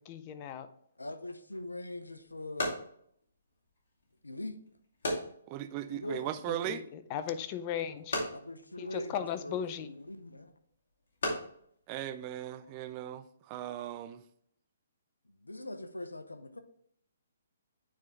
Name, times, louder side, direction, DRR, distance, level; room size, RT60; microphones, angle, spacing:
voice 1, 0.1-0.7 6.5-8.2 8.8-9.9, left 9 dB, 30° left, 0.5 m, -37 dB
voice 2, 1.0-2.8 4.2-4.6 5.8-6.3 8.3-10.5 15.4-16.6, left 1 dB, 90° left, 0.7 m, -42 dB
sound 1, 1.5-12.9, left 1 dB, 55° left, 2.4 m, -41 dB
voice 3, 5.5-6.8 11.9-14.2, right 11 dB, 30° right, 0.5 m, -38 dB
9.1 x 3.7 x 3.4 m
figure-of-eight pair, 130°, 0 cm